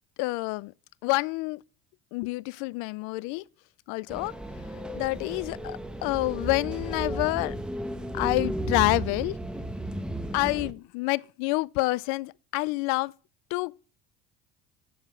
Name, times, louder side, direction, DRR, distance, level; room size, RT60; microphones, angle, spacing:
voice 1, 0.2-0.7 1.0-1.6 2.1-3.4 3.9-4.3 4.9-7.5 8.1-9.3 10.3-13.1 13.5-13.8, left 23 dB, 70° left, 0.4 m, -28 dB
sound 1, 4.1-10.7, right 1 dB, 5° right, 1.0 m, -34 dB
7.8 x 6.9 x 6.0 m
supercardioid pair, 85°, 32 cm